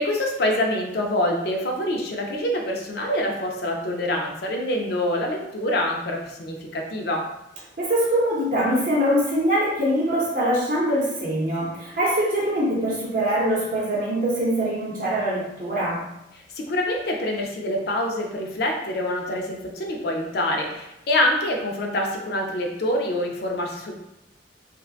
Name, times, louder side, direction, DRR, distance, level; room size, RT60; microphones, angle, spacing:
voice 1, 0.0-7.3 16.5-23.9, left 1 dB, 60° left, 1 dB, 0.4 m, -25 dB
voice 2, 7.8-16.0, equal, 50° right, -5 dB, 0.7 m, -23 dB
2.6 x 2.1 x 2.4 m, 0.89 s
head